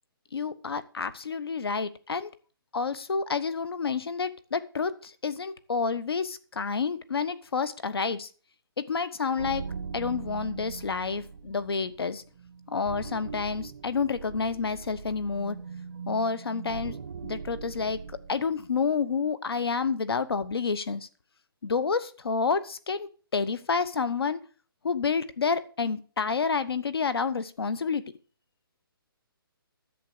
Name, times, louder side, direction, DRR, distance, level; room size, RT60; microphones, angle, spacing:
voice 1, 0.3-2.3 2.7-8.3 8.8-9.6 9.9-12.2 12.7-15.6 16.1-17.0 17.2-18.0 18.3-21.1 21.6-24.4 24.8-28.0, left 5 dB, 85° left, 15 dB, 1.2 m, -29 dB
sound 1, 9.4-18.6, right 6 dB, 45° right, 0.7 m, -41 dB
11.0 x 7.5 x 6.7 m, 0.38 s
hypercardioid pair, 170°, 13 cm